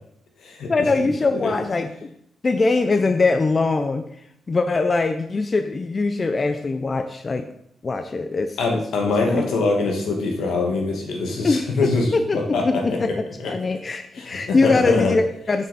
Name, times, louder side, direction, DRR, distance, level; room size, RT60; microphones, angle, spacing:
voice 1, 0.7-2.1 2.4-4.1 4.5-7.5 7.8-8.8 9.3-9.5 11.4-12.4 12.6-15.7, left 3 dB, 30° left, 7 dB, 0.5 m, -22 dB
voice 2, 8.6-12.1 12.3-12.8 14.1-15.1, left 3 dB, 80° left, 1 dB, 1.7 m, -23 dB
7.0 x 6.6 x 4.2 m, 0.71 s
cardioid pair, 125°, 0 cm